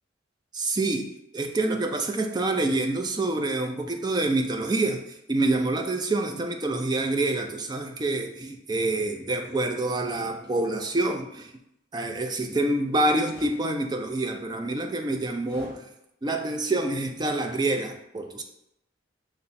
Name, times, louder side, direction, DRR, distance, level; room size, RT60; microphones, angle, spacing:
voice 1, 0.5-1.1 1.3-11.5 11.9-15.9 16.2-18.4, right 2 dB, 20° right, 4 dB, 0.3 m, -27 dB
sound 1, 13.2-13.6 15.4-15.8, left 1 dB, 25° left, 1.4 m, -45 dB
5.5 x 2.1 x 4.0 m, 0.83 s
head